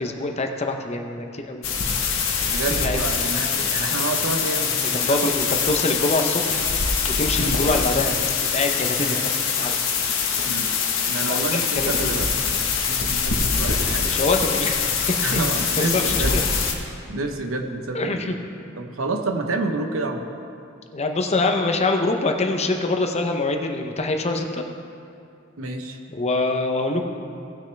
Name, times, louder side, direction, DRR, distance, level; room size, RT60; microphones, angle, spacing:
voice 1, 0.0-1.6 2.8-3.0 5.1-6.7 7.1-8.2 8.5-9.8 11.3-12.1 14.0-14.8 15.8-16.4 17.9-18.4 20.9-24.6 26.1-27.0, left 2 dB, 30° left, 4 dB, 0.8 m, -24 dB
sound 1, 1.6-16.7, left 5 dB, 80° left, 1.2 m, -24 dB
voice 2, 2.5-5.6 7.4-7.6 9.0-9.1 10.4-10.7 11.1-12.6 12.9-14.3 15.2-16.4 17.1-18.4 18.8-20.3 25.6-26.0, right 2 dB, 85° right, 4 dB, 0.9 m, -29 dB
18.0 x 6.5 x 3.4 m, 2.5 s
head